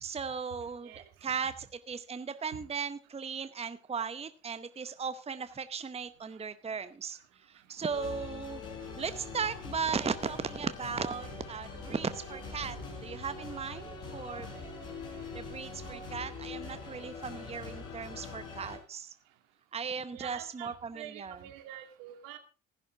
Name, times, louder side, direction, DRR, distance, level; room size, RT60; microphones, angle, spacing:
voice 1, 0.0-0.9 1.2-1.5 1.9-7.2 7.5-8.6 9.0-12.8 13.0-14.5 15.3-19.1 19.7-21.4, right 6 dB, 15° right, 12 dB, 0.8 m, -37 dB
voice 2, 0.8-1.4 20.1-22.4, right 12 dB, 70° right, 7 dB, 2.1 m, -47 dB
sound 1, 7.9-18.8, left 4 dB, 60° left, 5.6 m, -43 dB
15.0 x 11.0 x 3.5 m, 0.35 s
hypercardioid pair, 55°, 36 cm